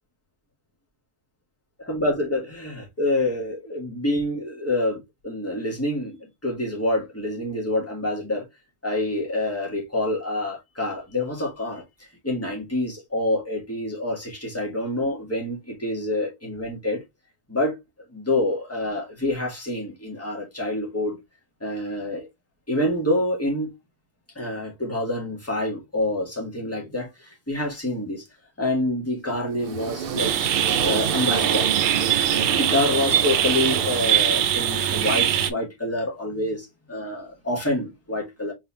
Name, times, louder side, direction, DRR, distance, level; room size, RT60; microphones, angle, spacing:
voice 1, 1.8-8.4 8.8-17.0 17.5-17.7 18.1-21.1 21.6-22.3 22.7-23.7 24.3-28.2 28.6-30.3 30.8-38.5, left 1 dB, 15° left, 1.7 m, -27 dB
sound 1, 29.5-34.6, right 7 dB, 60° right, 0.7 m, -30 dB
sound 2, 30.2-35.5, right 10 dB, 90° right, 0.9 m, -22 dB
4.1 x 3.8 x 2.7 m
omnidirectional pair, 1.1 m